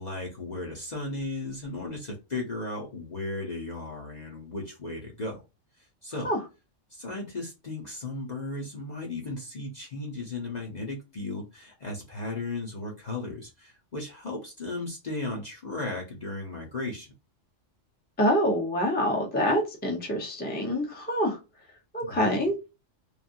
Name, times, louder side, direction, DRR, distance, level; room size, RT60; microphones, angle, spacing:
voice 1, 0.0-5.4 5.8-6.3 6.9-17.1 22.1-22.3, left 2 dB, 40° left, 0.8 m, -35 dB
voice 2, 18.2-21.4 21.9-22.5, equal, 10° left, 0.6 m, -26 dB
3.1 x 2.5 x 2.5 m
omnidirectional pair, 1.4 m